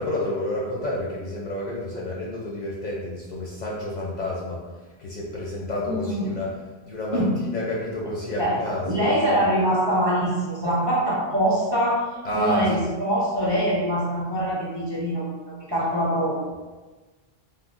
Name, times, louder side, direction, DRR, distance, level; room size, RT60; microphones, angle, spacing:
voice 1, 0.0-4.6 5.0-6.5 6.8-9.4 12.2-12.7, left 1 dB, 55° left, -5 dB, 0.5 m, -29 dB
voice 2, 5.9-6.3 7.1-7.4 8.4-8.6 8.8-12.1 12.3-15.3 15.7-16.6, equal, 35° right, -7 dB, 0.4 m, -23 dB
3.4 x 2.1 x 2.4 m, 1.2 s
omnidirectional pair, 1.1 m